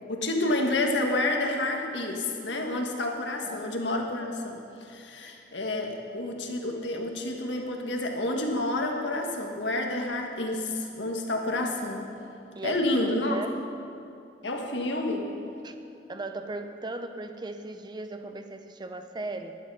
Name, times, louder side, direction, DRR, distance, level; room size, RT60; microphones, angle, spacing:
voice 1, 0.1-12.1 12.6-13.4 14.4-15.3, left 2 dB, 85° left, 2 dB, 1.6 m, -29 dB
voice 2, 12.5-13.5 15.6-15.8 16.1-19.6, right 2 dB, 25° right, 8 dB, 0.7 m, -37 dB
12.5 x 11.5 x 5.5 m, 2.7 s
head